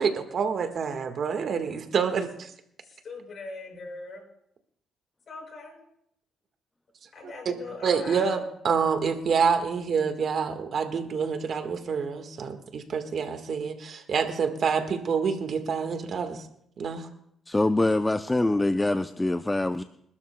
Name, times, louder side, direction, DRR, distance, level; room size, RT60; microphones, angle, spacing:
voice 1, 0.0-2.5 7.8-16.4 16.8-17.1, right 6 dB, 55° right, 7 dB, 1.5 m, -27 dB
voice 2, 2.8-4.3 5.3-5.8 7.1-8.5, left 3 dB, 50° left, 0 dB, 6.3 m, -41 dB
voice 3, 17.5-19.8, left 2 dB, 15° left, 10 dB, 0.5 m, -24 dB
27.5 x 12.5 x 2.3 m, 0.73 s
cardioid pair, 90°, 0 cm